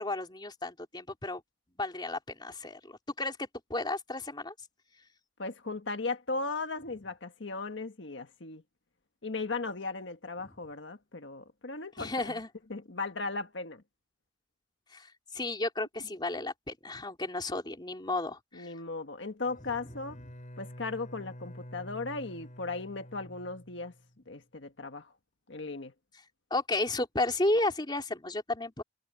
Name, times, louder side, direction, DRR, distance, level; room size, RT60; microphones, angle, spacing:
voice 1, 0.0-1.4 1.8-4.5 12.0-12.5 14.9-18.7 26.5-28.8, left 2 dB, 25° left, 3.5 m, -33 dB
voice 2, 5.4-8.6 9.2-12.4 12.7-13.8 18.5-20.2 20.6-23.9 24.3-25.1 25.5-25.9, left 3 dB, 85° left, 1.5 m, -37 dB
Bowed string instrument, 19.4-24.2, equal, 45° left, 3.7 m, -48 dB
head